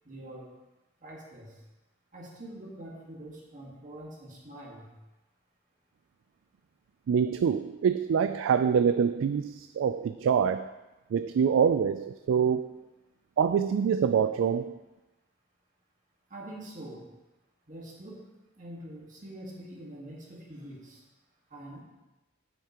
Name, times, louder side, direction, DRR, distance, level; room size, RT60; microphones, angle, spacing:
voice 1, 0.0-0.5 1.0-1.5 2.1-4.9 16.3-17.1 17.7-18.3 18.6-21.0 21.5-21.8, right 1 dB, 40° right, -4 dB, 1.7 m, -44 dB
voice 2, 7.1-10.8 11.1-12.9 13.4-14.8, right 7 dB, 85° right, 10 dB, 0.3 m, -25 dB
9.2 x 8.2 x 3.0 m, 1.1 s
head